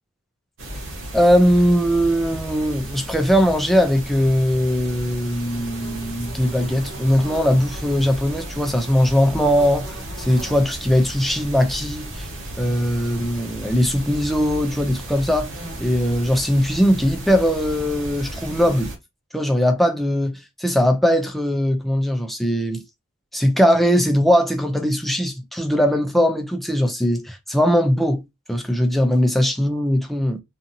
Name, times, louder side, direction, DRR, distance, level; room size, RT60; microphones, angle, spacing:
sound 1, 0.6-19.0, right 1 dB, 60° right, 1.0 m, -34 dB
voice 1, 1.1-12.3 12.6-15.5 15.8-18.9 19.3-22.8 23.3-28.2 28.5-30.4, equal, ahead, 0.4 m, -20 dB
2.7 x 2.5 x 2.6 m
head